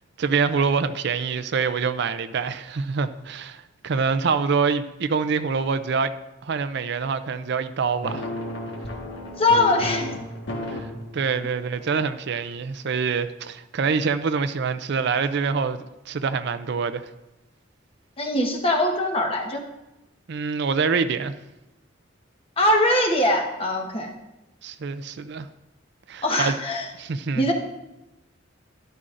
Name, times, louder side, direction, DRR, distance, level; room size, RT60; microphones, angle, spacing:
voice 1, 0.2-6.1 6.4-8.3 10.7-17.1 20.3-21.3 24.6-25.5 26.1-26.5 27.0-27.4, right 5 dB, 60° right, 0.4 m, -25 dB
sound 1, 8.0-10.9 11.3-11.6 11.9-12.1, left 1 dB, 65° left, 1.5 m, -32 dB
voice 2, 9.4-10.1 18.2-19.6 22.6-24.1 26.2-26.9 27.3-27.5, left 1 dB, 30° left, 1.2 m, -22 dB
12.5 x 11.5 x 2.5 m
head